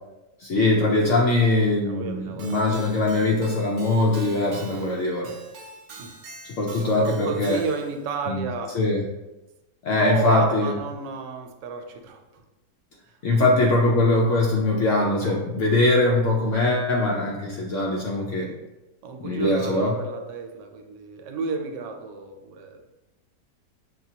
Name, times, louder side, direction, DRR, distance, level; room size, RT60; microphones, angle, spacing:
voice 1, 0.4-5.3 6.5-7.6 8.3-8.5 8.7-9.0 9.8-10.7 13.2-18.5 19.2-19.9, left 2 dB, 85° left, -2 dB, 0.6 m, -22 dB
voice 2, 1.8-2.6 6.0-6.2 6.7-8.8 10.0-12.4 13.1-13.5 18.5-18.6 19.0-22.8, right 5 dB, 85° right, 5 dB, 1.2 m, -32 dB
Keyboard (musical), 2.4-8.1, right 3 dB, 65° right, 1.0 m, -43 dB
5.9 x 2.2 x 2.7 m, 1.0 s
omnidirectional pair, 1.9 m